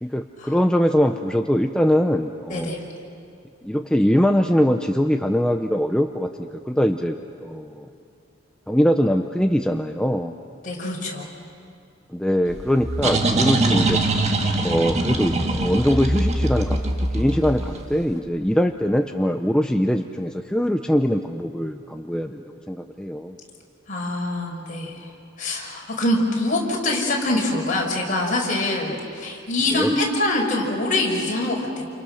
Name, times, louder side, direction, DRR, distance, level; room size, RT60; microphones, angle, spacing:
voice 1, 0.0-2.7 3.6-6.3 6.7-7.1 7.4-7.9 8.7-10.3 12.1-14.0 14.6-16.8 17.1-23.4 29.8-29.9, equal, 5° left, 4 dB, 0.6 m, -22 dB
voice 2, 10.6-11.3 23.9-25.1 25.4-31.8, left 2 dB, 40° left, -2 dB, 5.4 m, -24 dB
sound 1, 12.5-18.0, right 2 dB, 35° right, 1.7 m, -23 dB
29.0 x 28.5 x 6.5 m, 2.4 s
head